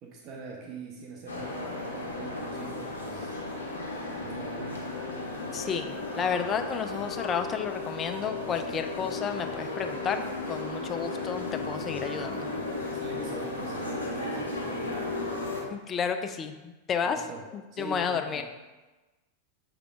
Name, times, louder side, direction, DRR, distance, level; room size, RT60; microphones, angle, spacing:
voice 1, 0.0-3.4 4.2-4.8 12.9-15.2 17.0-17.5 17.7-18.4, right 4 dB, 35° right, -1 dB, 0.6 m, -43 dB
sound 1, 1.3-15.6, left 2 dB, 75° left, 0.7 m, -35 dB
voice 2, 5.5-12.5 15.7-17.2 17.8-18.4, left 7 dB, 25° left, 6 dB, 0.3 m, -31 dB
6.0 x 3.3 x 2.3 m, 1.2 s
figure-of-eight pair, 90°, 0 cm